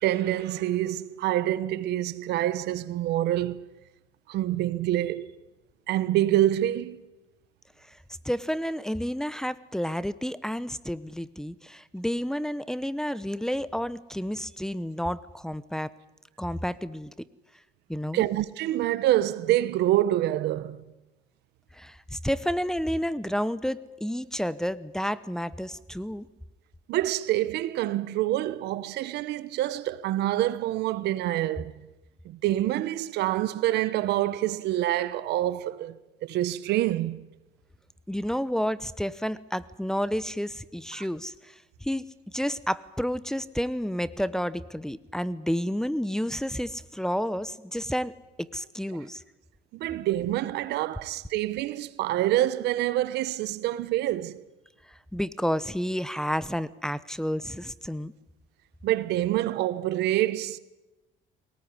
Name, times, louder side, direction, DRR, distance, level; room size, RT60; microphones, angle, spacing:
voice 1, 0.0-3.6 4.3-5.3 5.9-7.0 18.1-20.8 26.9-31.7 32.2-35.9 36.2-37.2 40.9-41.0 49.7-54.4 58.8-60.6, right 14 dB, 80° right, 1.2 m, -26 dB
voice 2, 8.2-15.9 16.4-17.1 17.9-18.2 21.8-26.2 38.1-41.3 41.8-42.0 42.3-48.1 48.5-49.2 55.1-58.1, equal, 5° left, 0.9 m, -30 dB
22.0 x 19.0 x 9.7 m
cardioid pair, 110°, 17 cm